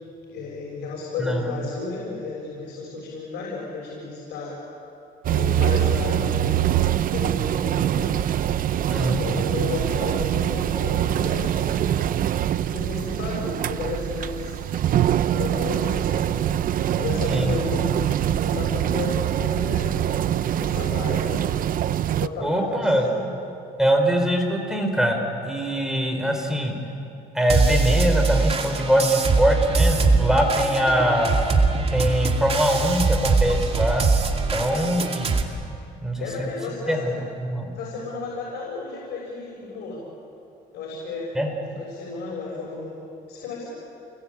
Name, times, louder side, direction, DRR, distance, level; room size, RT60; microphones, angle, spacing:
voice 1, 0.3-4.6 5.3-8.2 8.9-12.0 12.7-14.6 15.3-16.5 16.9-20.0 20.6-21.5 22.2-23.3 36.2-37.2 37.7-40.0 40.7-41.4 41.7-43.7, left 3 dB, 80° left, -4 dB, 6.6 m, -33 dB
sound 1, 5.2-22.3, right 11 dB, 55° right, 0.8 m, -24 dB
voice 2, 8.9-9.2 17.3-17.5 22.4-23.1 23.8-25.2 25.4-26.8 27.3-31.4 31.9-34.1 34.5-35.4 36.0-36.5 36.9-37.1 37.4-37.8 41.3-41.5, equal, 5° right, 3 dB, 4.5 m, -22 dB
sound 2, 27.5-35.4, right 4 dB, 35° right, 2.8 m, -22 dB
29.0 x 21.0 x 8.8 m, 2.6 s
cardioid pair, 110°, 17 cm